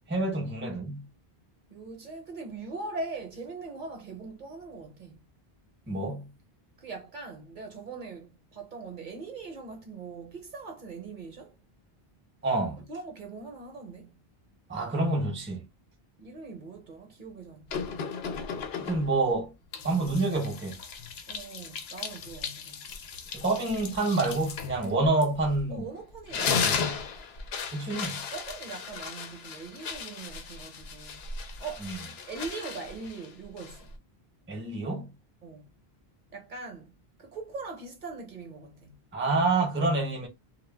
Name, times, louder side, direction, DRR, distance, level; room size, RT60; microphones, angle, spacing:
voice 1, 0.1-1.0 5.9-6.3 12.4-12.8 14.7-15.6 18.8-19.5 19.8-20.8 23.3-25.9 26.5-27.0 27.7-28.2 31.8-32.0 34.5-35.1 39.1-40.3, right 2 dB, 15° right, 0.5 m, -28 dB
voice 2, 1.7-5.2 6.8-11.6 12.9-14.2 16.2-18.0 21.3-22.8 25.7-26.9 28.3-31.2 31.6-31.9 32.3-33.9 35.4-35.7 36.3-36.9 37.2-39.0 39.9-40.0, right 3 dB, 55° right, 0.7 m, -41 dB
sound 1, 17.7-19.2 19.7-25.8 26.1-34.0, left 6 dB, 80° left, 0.8 m, -36 dB
2.2 x 2.1 x 3.2 m
omnidirectional pair, 1.0 m